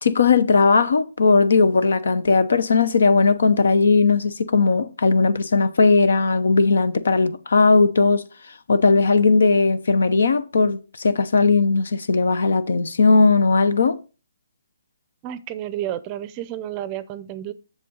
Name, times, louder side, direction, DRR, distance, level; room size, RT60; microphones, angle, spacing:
voice 1, 0.0-8.2 8.7-14.0, left 4 dB, 75° left, 0.8 m, -18 dB
voice 2, 15.2-17.5, right 12 dB, 25° right, 0.5 m, -31 dB
7.4 x 6.7 x 3.8 m
hypercardioid pair, 155°, 0 cm